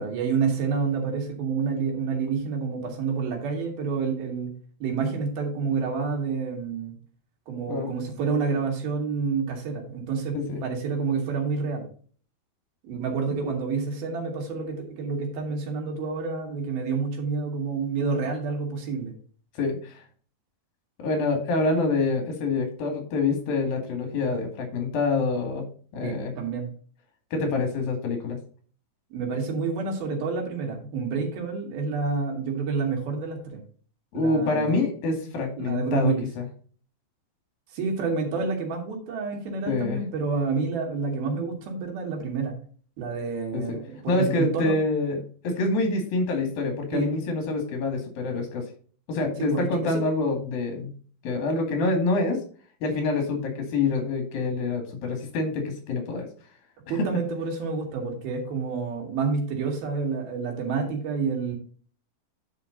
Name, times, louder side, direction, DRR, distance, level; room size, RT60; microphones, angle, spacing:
voice 1, 0.0-4.5 4.8-7.0 7.5-11.9 12.8-19.1 26.0-26.7 29.1-33.4 34.1-34.8 35.6-36.3 37.7-42.5 43.0-44.8 46.9-47.1 49.4-49.9 56.9-61.5, right 5 dB, 85° right, 1 dB, 4.1 m, -28 dB
voice 2, 19.6-19.9 21.0-25.7 25.9-26.3 27.3-28.4 34.1-36.5 39.7-40.0 43.5-43.8 44.1-48.6 49.1-50.9 51.2-52.4 52.8-56.3 57.0-57.1, left 3 dB, 75° left, 3 dB, 4.0 m, -26 dB
10.5 x 5.2 x 4.0 m, 0.43 s
omnidirectional pair, 4.2 m